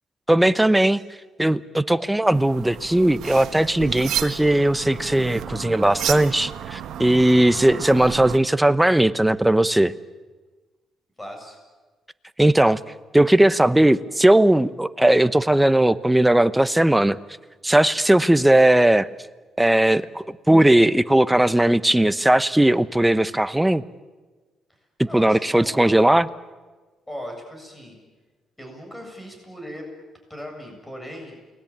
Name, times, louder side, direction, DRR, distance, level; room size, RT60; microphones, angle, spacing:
voice 1, 0.3-1.0 1.4-9.9 12.4-12.8 13.1-17.2 17.6-19.1 19.6-23.8 25.1-26.3, right 1 dB, 10° right, 14 dB, 0.9 m, -18 dB
sound 1, 2.3-8.4, right 10 dB, 75° right, 1.4 m, -32 dB
voice 2, 11.2-11.6 25.0-26.0 27.1-28.0 28.6-29.8 30.3-31.4, equal, 10° left, 3 dB, 7.5 m, -38 dB
29.5 x 21.0 x 8.8 m, 1.3 s
cardioid pair, 90°, 0 cm